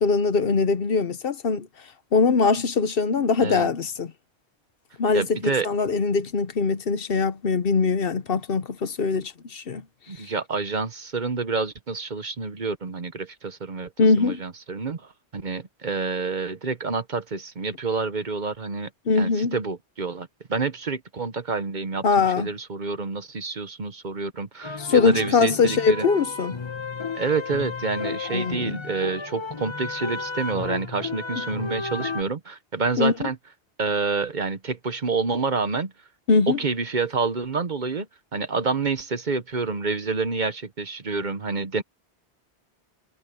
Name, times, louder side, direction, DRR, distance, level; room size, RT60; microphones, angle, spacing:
voice 1, 0.0-1.7 2.1-4.1 5.0-9.8 10.2-10.3 14.0-14.4 19.1-19.5 22.0-22.5 24.8-26.6 28.3-28.8 33.0-33.3 36.3-36.6, left 4 dB, 60° left, 1.1 m, -22 dB
voice 2, 3.4-3.7 5.1-5.7 10.1-13.9 14.2-18.9 19.2-26.1 27.1-33.4 33.8-35.9 36.6-38.1 38.3-41.8, right 4 dB, 45° right, 1.1 m, -28 dB
sound 1, 24.6-32.2, left 4 dB, 25° left, 0.9 m, -33 dB
omnidirectional pair, 1.1 m